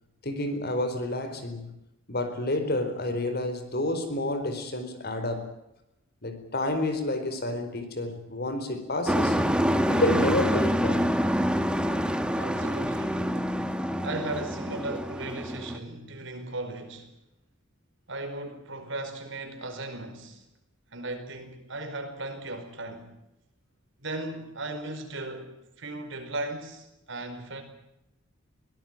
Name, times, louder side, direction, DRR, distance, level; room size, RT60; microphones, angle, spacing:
voice 1, 0.2-1.7 2.1-5.5 6.2-9.4 9.9-11.1, left 1 dB, 50° left, 4.5 m, -29 dB
Truck, 9.1-15.8, equal, 5° right, 1.5 m, -26 dB
voice 2, 12.3-13.3 14.0-17.1 18.1-20.5 20.9-23.1 24.0-27.6, right 2 dB, 65° right, 5.0 m, -37 dB
23.0 x 17.5 x 9.2 m
head